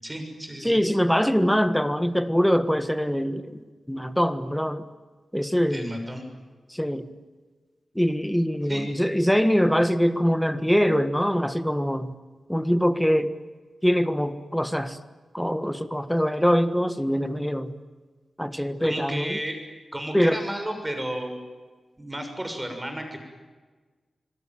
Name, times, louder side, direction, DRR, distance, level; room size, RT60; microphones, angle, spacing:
voice 1, 0.0-0.8 5.7-6.2 8.7-8.9 18.8-19.6 19.9-21.4 22.0-23.2, right 1 dB, 15° right, 5 dB, 6.5 m, -32 dB
voice 2, 0.6-3.6 3.9-4.8 5.3-5.9 6.7-7.1 7.9-12.1 12.5-13.3 13.8-15.0 15.3-17.7 18.4-19.4 20.1-20.4, equal, 5° left, 11 dB, 1.5 m, -23 dB
26.5 x 23.0 x 9.3 m, 1.4 s
wide cardioid pair, 110°, 0 cm